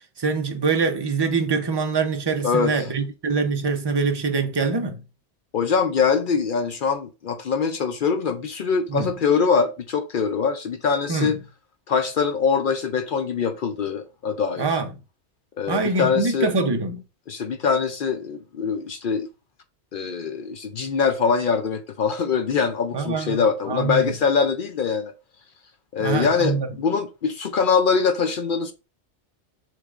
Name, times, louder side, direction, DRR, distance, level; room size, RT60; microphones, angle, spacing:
voice 1, 0.2-5.0 8.9-9.1 11.1-11.3 14.6-14.9 15.7-17.0 22.9-24.1 26.0-26.7, right 4 dB, 30° right, 0.5 m, -24 dB
voice 2, 2.4-2.8 5.5-11.4 11.9-14.8 15.6-16.5 17.3-19.3 19.9-25.1 25.9-28.7, left 5 dB, 60° left, 0.6 m, -23 dB
6.4 x 3.3 x 2.4 m
omnidirectional pair, 1.2 m